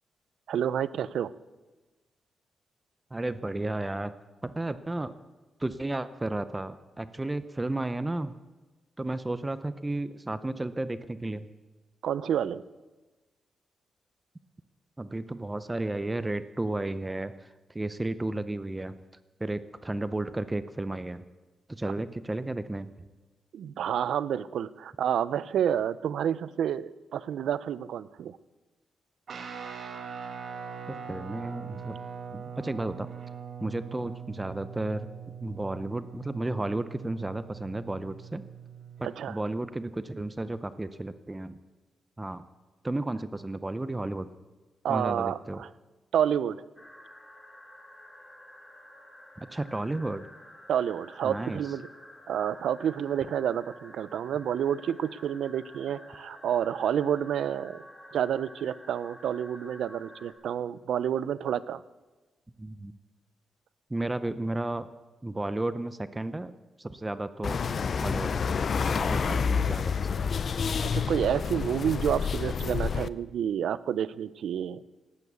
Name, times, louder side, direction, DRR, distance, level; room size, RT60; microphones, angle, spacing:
voice 1, 0.5-1.3 12.0-12.6 23.5-28.4 39.0-39.4 44.8-45.7 46.1-46.6 50.7-51.9 52.3-57.8 58.1-61.8 70.8-74.8, right 9 dB, 85° right, 17 dB, 0.5 m, -29 dB
voice 2, 3.1-4.1 4.4-5.1 5.6-8.3 9.0-11.5 15.0-19.0 19.4-21.2 21.7-22.9 30.9-32.0 32.3-33.1 33.6-35.1 35.4-38.4 39.0-41.6 42.2-42.4 42.8-44.3 44.9-45.6 49.4-50.3 51.2-51.6 62.6-63.0 63.9-64.9 65.2-66.5 66.8-67.6 68.0-68.3 68.9-70.3, right 2 dB, 15° right, 13 dB, 0.6 m, -33 dB
Guitar, 29.3-39.1, right 7 dB, 60° right, 1.6 m, -42 dB
sound 1, 46.8-60.3, left 1 dB, 15° left, 2.8 m, -50 dB
sound 2, 67.4-73.1, left 6 dB, 50° left, 0.5 m, -28 dB
18.0 x 8.6 x 8.1 m, 1.2 s
cardioid pair, 105°, 0 cm